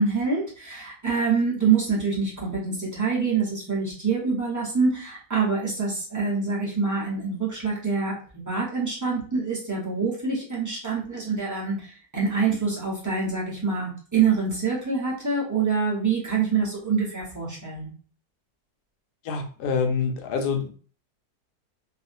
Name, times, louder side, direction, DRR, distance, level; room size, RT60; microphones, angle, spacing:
voice 1, 0.0-17.9, right 5 dB, 25° right, -6 dB, 0.4 m, -25 dB
voice 2, 19.3-20.7, left 5 dB, 70° left, 5 dB, 1.0 m, -26 dB
2.7 x 2.5 x 2.5 m, 0.41 s
omnidirectional pair, 1.8 m